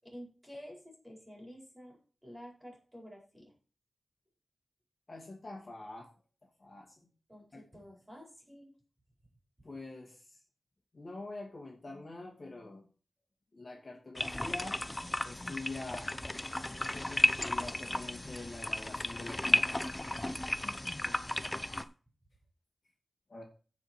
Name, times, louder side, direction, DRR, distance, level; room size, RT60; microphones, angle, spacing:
voice 1, 0.0-3.5 7.3-8.8 21.0-21.9, equal, 10° right, -1 dB, 4.9 m, -51 dB
voice 2, 5.1-6.1 6.6-7.1 7.5-7.6 9.6-10.4 10.9-12.9 13.5-14.8 15.2-16.2 16.7-19.9 23.3-23.4, left 2 dB, 40° left, 0 dB, 2.4 m, -45 dB
sound 1, 14.2-21.8, left 1 dB, 20° left, 0.6 m, -33 dB
15.0 x 5.1 x 4.6 m, 0.38 s
wide cardioid pair, 115°, 0 cm